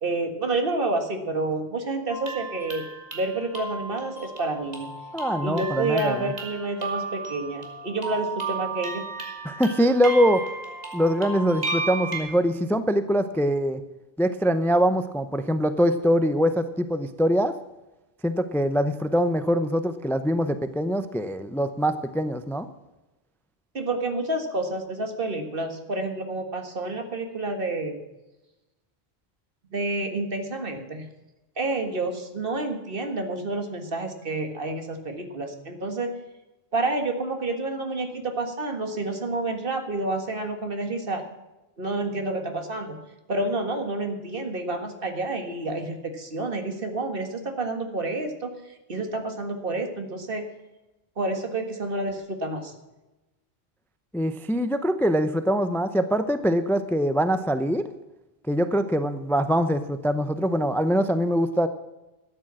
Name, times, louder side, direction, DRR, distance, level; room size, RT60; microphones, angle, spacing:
voice 1, 0.0-2.9 3.1-4.9 5.4-9.1 23.7-28.0 29.7-31.1 31.6-36.1 36.7-41.2 41.8-43.0 43.3-48.5 48.9-50.4 51.2-52.7, right 2 dB, 60° right, 5 dB, 1.9 m, -29 dB
sound 1, 2.1-12.2, right 3 dB, 40° right, 2.6 m, -34 dB
voice 2, 5.1-6.3 9.4-10.4 10.9-13.8 14.2-17.5 18.2-22.7 54.1-57.8 58.5-61.7, equal, 5° left, 11 dB, 0.5 m, -23 dB
13.0 x 9.0 x 7.5 m, 1.0 s
omnidirectional pair, 1.1 m